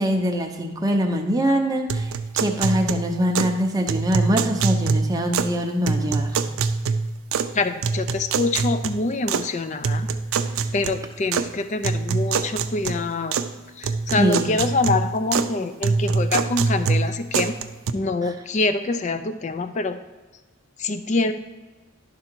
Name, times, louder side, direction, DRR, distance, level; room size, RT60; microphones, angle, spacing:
voice 1, 0.0-6.4 14.2-14.5, equal, 20° right, 2 dB, 0.7 m, -23 dB
sound 1, 1.9-3.6 3.9-5.6 5.9-7.5 7.8-9.5 9.8-11.5 11.8-13.5 13.8-15.5 15.8-17.9, right 5 dB, 80° right, 0.4 m, -25 dB
voice 2, 7.5-10.1 10.7-13.4 13.8-17.5 17.9-20.0 20.8-21.3, left 3 dB, 35° left, 10 dB, 0.4 m, -25 dB
11.0 x 3.7 x 4.5 m, 1.3 s
head